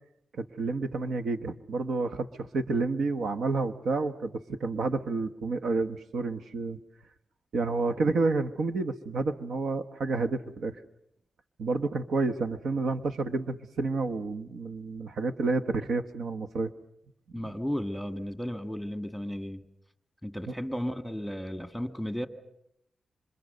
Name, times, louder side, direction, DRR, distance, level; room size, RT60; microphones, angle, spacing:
voice 1, 0.4-6.8 7.5-10.8 11.6-16.7, right 3 dB, 80° right, 8 dB, 1.2 m, -30 dB
voice 2, 17.3-19.6 20.2-22.3, equal, ahead, 9 dB, 1.7 m, -34 dB
27.0 x 25.5 x 6.7 m, 0.78 s
cardioid pair, 100°, 0 cm